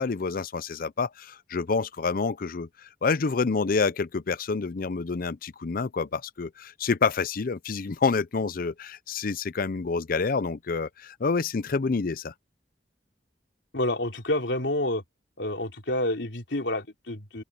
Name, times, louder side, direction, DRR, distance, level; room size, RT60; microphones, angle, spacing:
voice 1, 0.0-12.3, left 4 dB, 55° left, 0.6 m, -28 dB
voice 2, 13.7-15.0 15.4-17.4, left 1 dB, 80° left, 3.5 m, -28 dB
open air
head